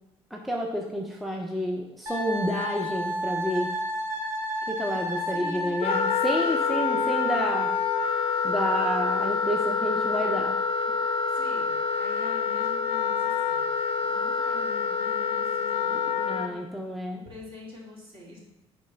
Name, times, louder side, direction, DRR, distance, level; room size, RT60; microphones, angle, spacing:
voice 1, 0.3-3.7 4.7-7.8 8.4-10.6 15.9-17.2, equal, ahead, 0 dB, 0.6 m, -30 dB
Wind instrument woodwind instrument, 2.1-6.5, equal, 25° right, 1.2 m, -32 dB
voice 2, 5.3-5.7 11.3-13.6 14.0-16.6 17.1-18.4, left 1 dB, 50° right, -4 dB, 2.4 m, -45 dB
Wind instrument woodwind instrument 2, 5.8-16.5, left 5 dB, 55° left, 0.6 m, -27 dB
5.3 x 4.2 x 5.7 m, 0.91 s
cardioid pair, 135°, 11 cm